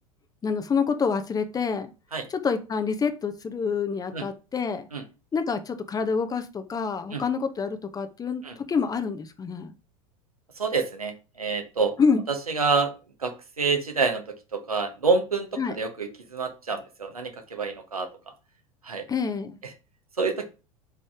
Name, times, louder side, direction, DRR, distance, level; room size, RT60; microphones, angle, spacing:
voice 1, 0.4-1.9 2.3-4.9 5.3-9.7 12.0-12.2 15.6-15.8 19.1-19.6, left 5 dB, 20° left, 9 dB, 0.9 m, -27 dB
voice 2, 10.6-11.9 12.3-12.9 13.2-14.2 14.5-15.5 15.8-18.1 18.8-19.0 20.2-20.4, right 4 dB, 85° right, 6 dB, 1.2 m, -27 dB
5.0 x 4.2 x 4.8 m, 0.31 s
figure-of-eight pair, 85°, 18 cm